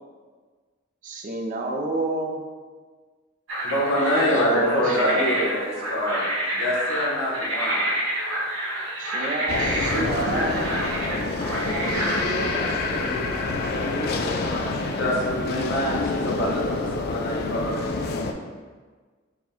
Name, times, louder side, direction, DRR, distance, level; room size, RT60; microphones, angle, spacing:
voice 1, 1.0-2.4 4.3-5.4 9.0-10.6, right 2 dB, 40° right, 1 dB, 0.4 m, -29 dB
sound 1, 3.5-12.2, right 1 dB, 70° right, 1.1 m, -28 dB
voice 2, 3.6-6.2 6.5-7.9 14.2-17.9, equal, 75° left, -5 dB, 1.0 m, -25 dB
sound 2, 9.5-18.3, left 3 dB, 50° left, 0.3 m, -27 dB
voice 3, 10.0-14.3, equal, 35° left, -7 dB, 1.2 m, -34 dB
4.8 x 2.2 x 3.6 m, 1.5 s
head